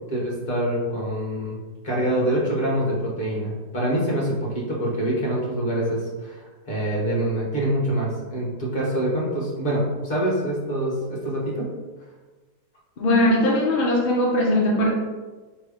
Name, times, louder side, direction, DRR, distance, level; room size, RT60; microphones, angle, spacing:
voice 1, 0.1-1.6 1.8-6.4 6.7-11.7, right 1 dB, 35° left, -4 dB, 1.4 m, -25 dB
voice 2, 13.0-14.9, left 1 dB, 60° left, -3 dB, 0.5 m, -20 dB
3.3 x 3.2 x 4.8 m, 1.3 s
omnidirectional pair, 1.9 m